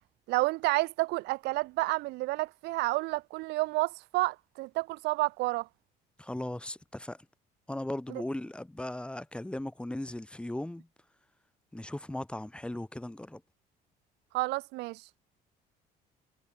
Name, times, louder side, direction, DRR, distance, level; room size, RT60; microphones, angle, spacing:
voice 1, 0.3-5.7 14.3-15.0, right 21 dB, 85° right, 0.8 m, -30 dB
voice 2, 6.2-7.3 7.7-10.9 11.7-13.4, left 1 dB, 5° left, 2.1 m, -37 dB
cardioid pair, 115°, 17 cm